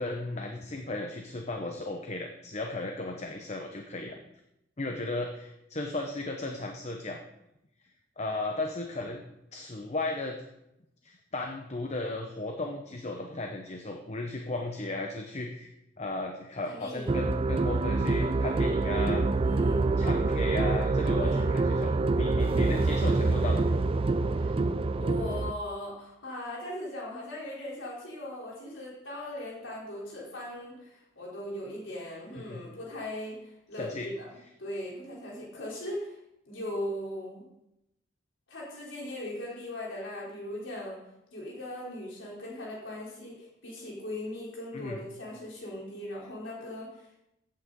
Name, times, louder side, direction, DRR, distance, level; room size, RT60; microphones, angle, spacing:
voice 1, 0.0-4.2 4.8-7.2 8.2-9.2 9.5-10.4 11.0-15.7 16.0-19.3 20.0-23.6 32.4-32.6 33.8-34.1 44.7-45.0, left 2 dB, 35° left, 3 dB, 0.8 m, -35 dB
voice 2, 16.7-17.1 19.4-19.8 21.2-21.5 24.3-24.7 25.0-34.3 34.6-36.2 36.5-37.5 38.5-41.0 41.3-47.0, left 1 dB, 85° left, -4 dB, 3.6 m, -39 dB
sound 1, 17.1-25.5, right 3 dB, 30° right, 0.4 m, -26 dB
15.0 x 8.5 x 3.8 m, 0.84 s
head